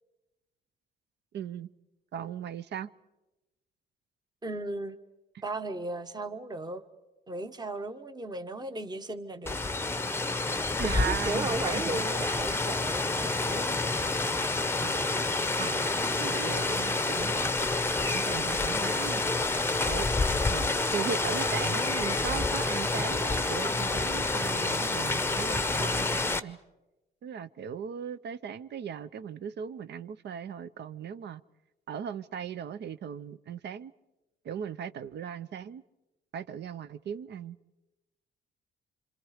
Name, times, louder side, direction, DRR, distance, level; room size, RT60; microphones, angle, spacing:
voice 1, 1.3-1.7 2.1-2.9 10.8-12.0 14.8-15.3 15.6-15.9 16.1-17.5 18.1-19.2 19.9-20.1 20.5-26.6 27.2-31.4 31.9-33.9 34.4-35.8 36.3-37.6, right 8 dB, 60° right, 0.7 m, -38 dB
voice 2, 4.4-5.0 5.4-6.8 7.3-9.6 10.8-13.8, right 1 dB, 20° right, 1.1 m, -36 dB
Rain, 9.5-26.4, left 3 dB, 10° left, 0.8 m, -28 dB
26.5 x 26.5 x 5.0 m
cardioid pair, 90°, 20 cm